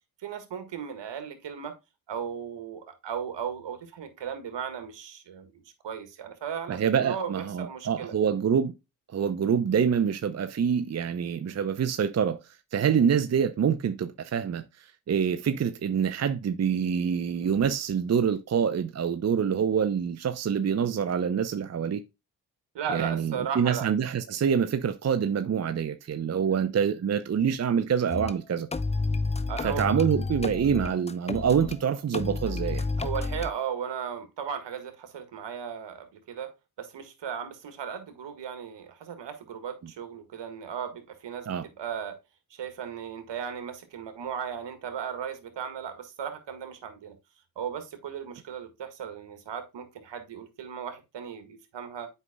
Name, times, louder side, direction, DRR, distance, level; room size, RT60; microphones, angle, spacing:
voice 1, 0.2-1.7 2.1-8.1 22.7-23.9 29.5-30.0 33.0-36.5 36.8-42.2 42.5-47.2 47.5-52.1, right 7 dB, 60° right, 1.7 m, -36 dB
voice 2, 6.7-8.7 9.1-12.4 12.7-14.6 15.1-22.0 22.9-28.7 29.6-32.9 41.5-41.6, right 7 dB, 35° right, 0.7 m, -26 dB
sound 1, 28.1-28.3 28.7-31.8 32.1-33.5, left 3 dB, 15° left, 0.5 m, -30 dB
8.0 x 5.5 x 2.2 m
hypercardioid pair, 45°, 47 cm